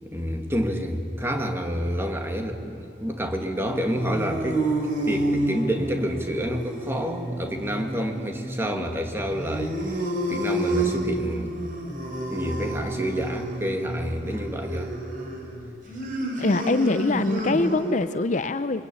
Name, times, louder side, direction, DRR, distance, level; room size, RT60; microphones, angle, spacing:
voice 1, 0.0-4.6 5.1-10.0 10.3-11.5 12.3-15.0, equal, 15° right, 4 dB, 2.2 m, -28 dB
sound 1, 3.6-18.1, right 1 dB, 50° right, 4.2 m, -30 dB
voice 2, 16.4-18.9, left 3 dB, 45° left, 12 dB, 0.6 m, -24 dB
27.0 x 23.5 x 8.6 m, 3.0 s
head